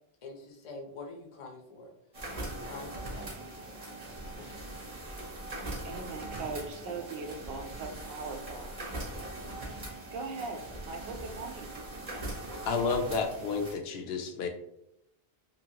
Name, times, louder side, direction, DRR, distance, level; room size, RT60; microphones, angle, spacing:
voice 1, 0.2-1.9 2.3-3.7 4.4-4.6, left 3 dB, 40° left, 0 dB, 0.6 m, -46 dB
sound 1, 2.1-13.7, right 1 dB, 40° right, 0.8 m, -41 dB
voice 2, 5.8-8.7 10.1-11.8, right 3 dB, 70° right, 4 dB, 0.7 m, -40 dB
voice 3, 12.7-14.5, left 4 dB, 75° left, 5 dB, 0.8 m, -31 dB
2.9 x 2.7 x 2.8 m, 0.80 s
omnidirectional pair, 1.1 m